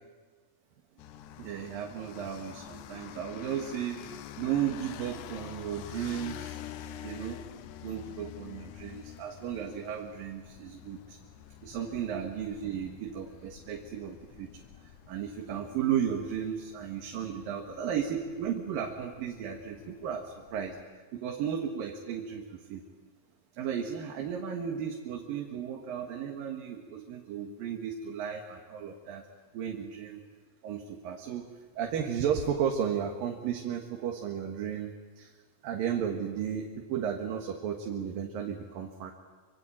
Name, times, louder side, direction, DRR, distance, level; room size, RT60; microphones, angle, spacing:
scooter pass by medium speed echo off building, 1.0-20.8, left 11 dB, 70° left, 2.2 m, -48 dB
voice 1, 1.4-6.6 7.0-7.4 7.8-11.2 11.6-20.8 21.1-22.8 23.5-29.3 29.5-30.2 30.6-31.5 31.7-35.3 35.6-39.1, right 8 dB, 85° right, 2 dB, 3.4 m, -34 dB
26.0 x 25.0 x 8.9 m, 1.5 s
omnidirectional pair, 4.0 m